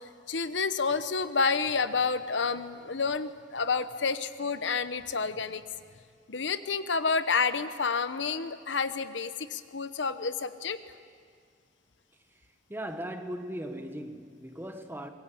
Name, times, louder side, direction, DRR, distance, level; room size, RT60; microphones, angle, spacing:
voice 1, 0.3-5.6 6.3-10.8, left 5 dB, 75° left, 1.0 m, -29 dB
voice 2, 12.7-15.1, equal, 10° right, 1.5 m, -38 dB
25.0 x 22.0 x 8.6 m
head